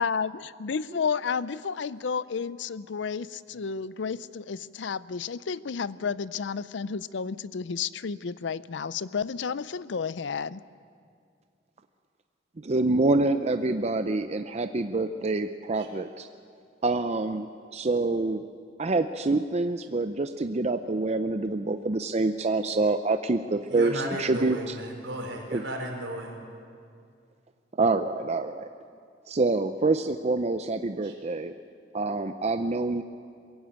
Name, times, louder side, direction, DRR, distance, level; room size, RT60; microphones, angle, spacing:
voice 1, 0.0-10.6, left 5 dB, 70° left, 0.5 m, -31 dB
voice 2, 12.6-16.3 16.8-18.4 18.8-23.9 24.2-24.6 25.5-25.6 27.8-28.7 29.3-31.5 31.9-33.0, right 3 dB, 35° right, 0.6 m, -26 dB
voice 3, 23.7-26.4 31.0-31.2, right 1 dB, 80° right, 4.5 m, -35 dB
22.0 x 16.0 x 8.8 m
head